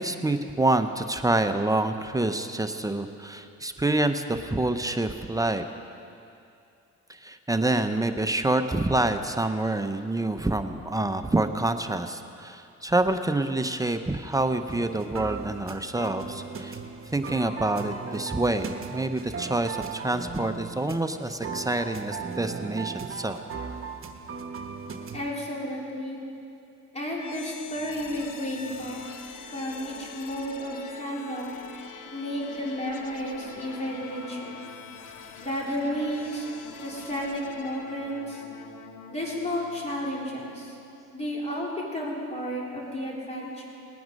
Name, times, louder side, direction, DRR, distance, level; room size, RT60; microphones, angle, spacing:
voice 1, 0.0-5.7 7.1-16.8 17.1-23.4, right 2 dB, 10° right, 7 dB, 0.7 m, -27 dB
sound 1, 14.7-25.3, right 5 dB, 45° right, 1.1 m, -37 dB
voice 2, 25.1-26.2 26.9-29.0 29.5-31.5 32.1-34.6 35.4-36.5 36.8-38.4 39.1-40.8 41.1-43.7, equal, 20° left, -4 dB, 3.6 m, -32 dB
sound 2, 27.1-41.0, left 6 dB, 80° left, 1.1 m, -44 dB
19.5 x 9.4 x 5.3 m, 2.6 s
cardioid pair, 90°, 30 cm